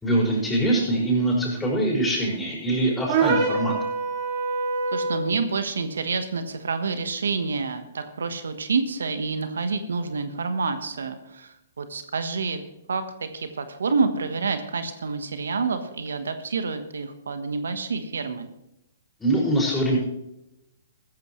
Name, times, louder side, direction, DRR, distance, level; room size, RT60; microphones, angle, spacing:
voice 1, 0.0-3.7 19.2-20.0, right 1 dB, 10° left, -3 dB, 5.7 m, -23 dB
sound 1, 3.1-5.3, right 4 dB, 45° right, 2.8 m, -25 dB
voice 2, 4.9-12.6 12.9-18.5, right 4 dB, 80° right, 9 dB, 1.2 m, -28 dB
15.0 x 14.0 x 3.2 m, 0.88 s
hypercardioid pair, 125°, 0 cm